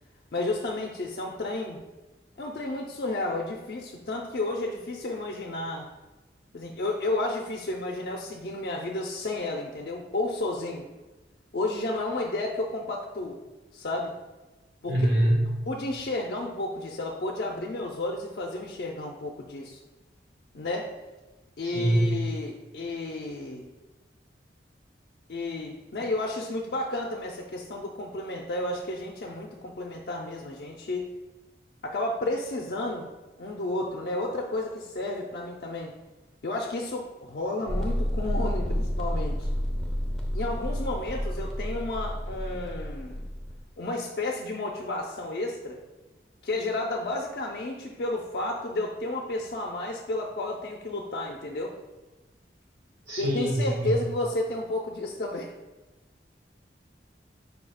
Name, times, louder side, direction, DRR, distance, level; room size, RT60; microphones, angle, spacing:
voice 1, 0.3-1.8 2.4-5.9 6.5-10.9 11.5-13.4 13.7-14.1 14.8-15.0 15.7-19.8 20.5-20.9 21.6-23.7 25.3-31.1 31.8-33.1 33.4-35.9 36.4-39.5 40.3-43.3 43.8-45.8 46.4-51.7 53.2-55.5, left 2 dB, 60° left, -1 dB, 0.4 m, -32 dB
voice 2, 14.9-15.5 21.6-22.1 53.1-53.9, right 1 dB, 85° right, -5 dB, 1.5 m, -24 dB
sound 1, 37.7-43.6, equal, ahead, 0.5 m, -30 dB
4.8 x 2.3 x 4.8 m, 1.1 s
head